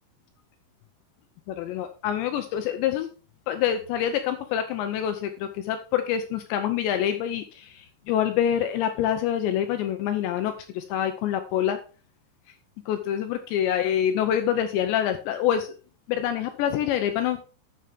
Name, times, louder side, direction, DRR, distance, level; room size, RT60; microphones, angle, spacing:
voice 1, 1.5-3.1 3.5-11.8 12.9-15.7 16.1-17.4, left 10 dB, 80° left, 8 dB, 2.7 m, -26 dB
12.0 x 7.1 x 3.5 m, 0.37 s
omnidirectional pair, 5.7 m